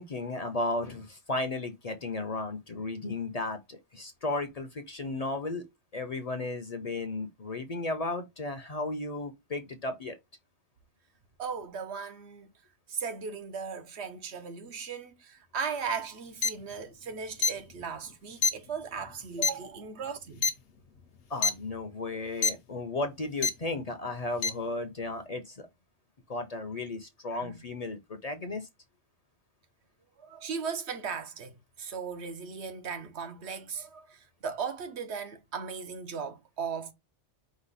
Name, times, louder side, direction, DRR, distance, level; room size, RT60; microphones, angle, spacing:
voice 1, 0.0-5.7 5.9-10.2 21.3-25.7 26.3-28.7, left 2 dB, 40° left, 0.7 m, -34 dB
voice 2, 11.4-12.5 12.9-20.4 27.3-27.5 30.2-36.9, right 6 dB, 75° right, 1.1 m, -37 dB
sound 1, 16.4-16.5 17.4-17.5 18.4-18.5 19.4-19.5 20.4-20.5 21.4-21.5 22.4-22.5 23.4-23.5 24.4-24.5, left 4 dB, 65° left, 0.9 m, -24 dB
5.1 x 2.2 x 4.0 m
omnidirectional pair, 1.1 m